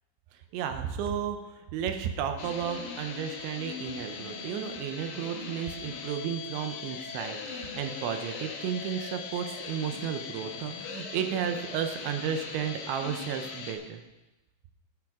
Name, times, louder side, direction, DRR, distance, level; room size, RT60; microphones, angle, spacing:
voice 1, 0.5-14.0, right 8 dB, 80° right, 6 dB, 2.9 m, -33 dB
sound 1, 2.4-13.7, left 5 dB, 80° left, 2.0 m, -40 dB
12.5 x 11.5 x 3.6 m, 1.0 s
omnidirectional pair, 5.8 m